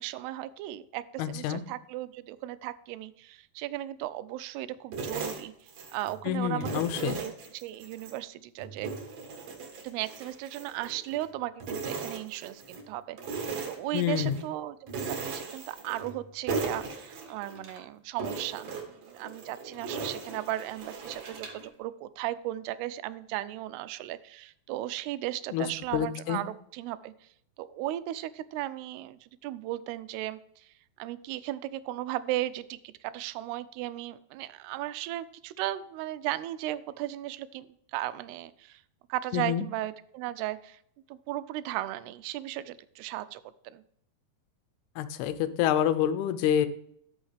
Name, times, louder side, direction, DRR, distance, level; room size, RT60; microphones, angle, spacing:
voice 1, 0.0-5.5 5.9-8.9 9.8-27.1 27.6-30.4 31.0-38.8 39.1-40.8 41.1-43.8, right 14 dB, 85° right, 14 dB, 2.6 m, -36 dB
voice 2, 1.2-1.6 6.2-7.2 13.9-14.4 25.5-25.7 25.9-26.4 39.3-39.6 45.0-46.7, left 10 dB, 80° left, 11 dB, 2.5 m, -27 dB
sound 1, 4.9-6.2 6.6-8.2 8.6-11.3 11.6-12.8 13.2-14.4 14.9-16.2 16.5-17.8 18.2-21.7, right 4 dB, 55° right, 2.1 m, -38 dB
12.5 x 5.6 x 3.4 m, 0.70 s
omnidirectional pair, 4.6 m